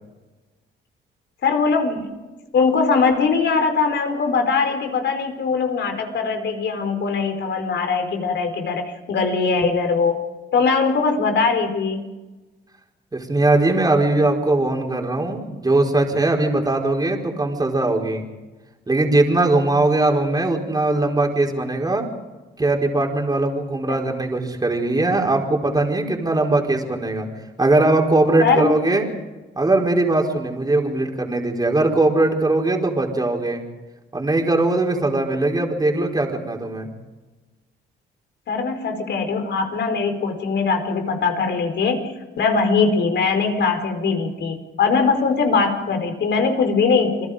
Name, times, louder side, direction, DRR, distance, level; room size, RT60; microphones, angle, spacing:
voice 1, 1.4-2.1 2.5-10.2 10.5-12.0 23.9-24.0 28.4-28.7 38.5-47.3, left 4 dB, 65° left, 6 dB, 4.6 m, -21 dB
voice 2, 13.1-18.2 18.9-22.1 22.6-27.3 27.6-29.0 29.6-33.6 34.1-36.9, right 2 dB, 20° right, 1 dB, 4.5 m, -20 dB
29.0 x 21.0 x 5.1 m, 1.2 s
cardioid pair, 90°, 20 cm